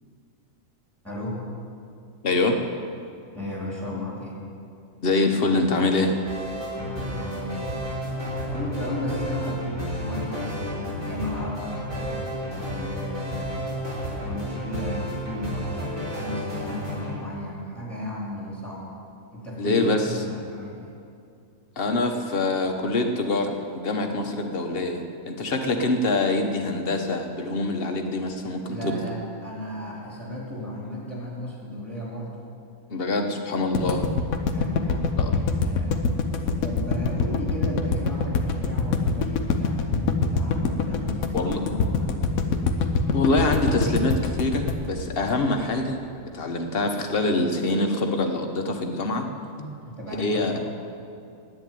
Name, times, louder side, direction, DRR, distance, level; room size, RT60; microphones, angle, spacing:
voice 1, 1.0-1.4 3.3-4.4 6.7-7.8 8.5-13.5 14.2-18.9 19.3-20.9 28.4-32.3 34.4-36.1 36.6-42.4 49.9-50.6, left 1 dB, ahead, -5 dB, 3.7 m, -35 dB
voice 2, 2.2-2.6 5.0-6.1 19.6-20.1 21.8-29.0 32.9-34.1 35.2-35.3 41.3-41.6 43.1-46.0 46.3-49.3 49.6-49.7 50.2-50.6, left 2 dB, 45° left, 4 dB, 1.2 m, -25 dB
sound 1, 5.9-17.2, equal, 70° right, 4.3 m, -32 dB
sound 2, 33.7-45.9, left 4 dB, 75° left, 1.3 m, -24 dB
10.5 x 8.6 x 9.4 m, 2.5 s
omnidirectional pair, 1.5 m